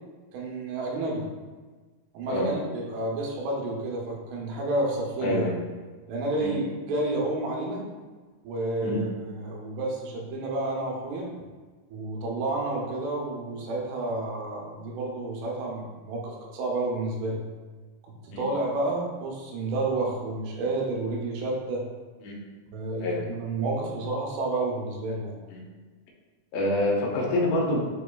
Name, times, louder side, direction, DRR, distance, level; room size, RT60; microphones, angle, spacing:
voice 1, 0.3-1.3 2.1-5.5 6.1-7.8 8.4-11.3 11.9-17.4 18.2-21.8 22.7-25.3, right 2 dB, 85° right, -2 dB, 2.9 m, -30 dB
voice 2, 5.2-5.6 6.4-6.5 8.8-9.0 18.3-18.4 22.2-22.3 23.0-23.2 25.5-25.6 26.5-27.8, left 1 dB, 90° left, -1 dB, 3.0 m, -26 dB
7.4 x 3.0 x 2.3 m, 1.3 s
omnidirectional pair, 4.8 m